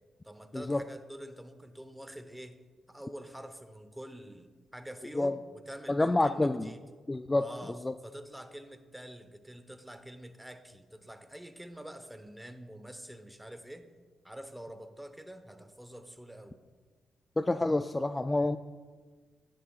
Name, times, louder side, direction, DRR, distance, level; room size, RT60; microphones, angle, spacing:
voice 1, 0.2-2.6 2.9-6.8 7.4-13.9 14.2-16.6, right 1 dB, 5° right, 8 dB, 0.9 m, -46 dB
voice 2, 5.9-6.7 7.1-7.4 7.8-7.9 17.4-18.6, left 2 dB, 20° left, 10 dB, 0.3 m, -28 dB
12.5 x 10.0 x 2.4 m, 1.4 s
supercardioid pair, 60°, 0 cm